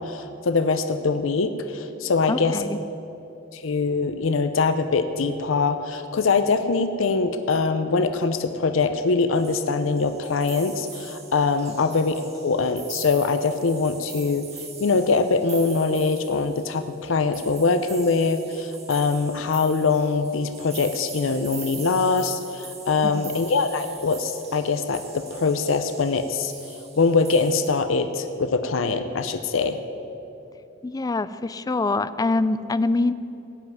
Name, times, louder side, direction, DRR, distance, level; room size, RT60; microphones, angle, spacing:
voice 1, 0.0-2.6 3.5-14.4 14.8-29.8, left 4 dB, 80° left, 9 dB, 0.6 m, -23 dB
voice 2, 2.3-2.8 23.0-23.3 30.8-33.1, left 3 dB, 20° left, 14 dB, 0.3 m, -24 dB
sound 1, 9.3-27.7, right 5 dB, 35° right, 1.8 m, -42 dB
16.5 x 5.6 x 9.3 m, 2.9 s
head